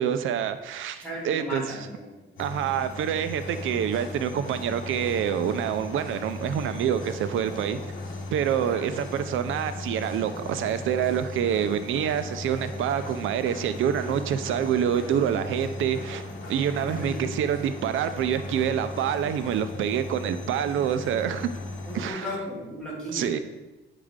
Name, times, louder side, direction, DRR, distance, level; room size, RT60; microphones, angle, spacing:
voice 1, 0.0-1.8 2.4-7.8 8.3-16.2 16.5-21.5 21.9-22.3 23.1-23.4, right 9 dB, 85° right, 10 dB, 0.4 m, -27 dB
voice 2, 1.0-2.2 8.6-8.9 16.6-17.4 21.8-23.3, equal, 5° left, -7 dB, 2.4 m, -36 dB
sound 1, 2.4-22.1, left 2 dB, 70° left, 1.2 m, -38 dB
sound 2, 3.1-19.6, left 2 dB, 45° left, 1.8 m, -46 dB
8.8 x 4.9 x 3.6 m, 1.1 s
wide cardioid pair, 175°, 20 cm